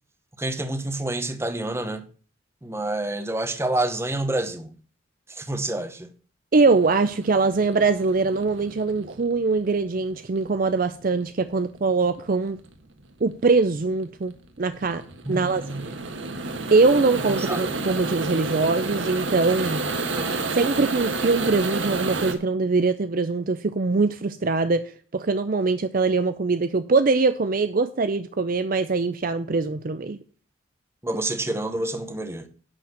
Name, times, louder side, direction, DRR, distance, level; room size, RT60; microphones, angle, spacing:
voice 1, 0.4-2.0 2.6-4.7 5.3-6.1 15.2-15.9 17.5-17.6 20.1-20.3 31.0-32.5, right 2 dB, 15° right, 1.0 m, -28 dB
voice 2, 6.5-12.6 13.2-15.0 15.3-16.0 16.7-19.8 20.5-24.8 25.1-30.2, right 3 dB, 45° right, 0.5 m, -22 dB
sound 1, 6.6-22.3, right 3 dB, 70° right, 1.5 m, -31 dB
11.0 x 4.2 x 7.6 m
head